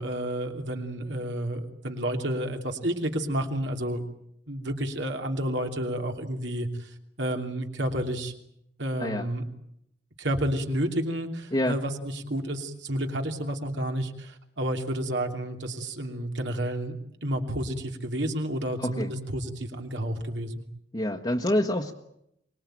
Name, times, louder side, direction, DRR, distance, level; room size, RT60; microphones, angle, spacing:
voice 1, 0.0-4.1 4.5-6.9 7.2-8.3 8.8-9.4 10.2-20.6, right 1 dB, 75° right, 4 dB, 2.9 m, -30 dB
voice 2, 18.8-19.1 20.9-21.9, left 1 dB, 25° left, 0 dB, 1.4 m, -27 dB
24.5 x 21.0 x 9.0 m, 0.76 s
head